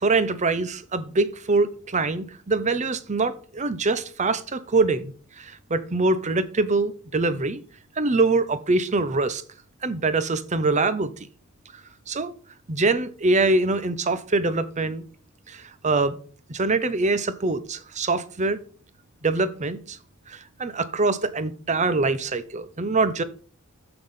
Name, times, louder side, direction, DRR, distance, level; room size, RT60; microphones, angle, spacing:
voice 1, 0.0-7.6 8.0-9.4 9.8-11.1 12.1-12.3 12.7-15.0 15.5-16.2 16.5-18.6 19.2-20.0 20.3-23.2, right 3 dB, 35° right, 0.8 m, -24 dB
6.8 x 6.0 x 5.6 m
head